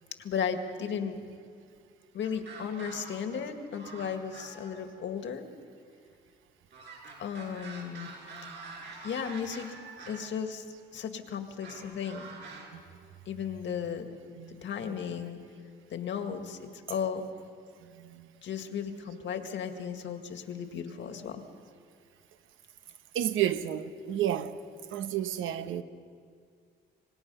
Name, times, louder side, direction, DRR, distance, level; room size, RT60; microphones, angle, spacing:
voice 1, 0.2-1.2 2.1-5.5 7.2-8.1 9.0-9.7 10.1-10.7 10.9-12.2 13.3-14.2 14.5-15.4 15.9-17.2 18.4-21.4, left 7 dB, 70° left, 1.9 m, -35 dB
sound 1, 2.2-3.4 3.7-4.9 6.7-10.3 11.6-12.7, right 4 dB, 60° right, 7.7 m, -46 dB
voice 2, 14.4-15.1 17.8-18.3 23.1-24.6 24.9-25.8, right 11 dB, 85° right, 1.0 m, -32 dB
26.0 x 19.0 x 5.5 m
cardioid pair, 90°, 20 cm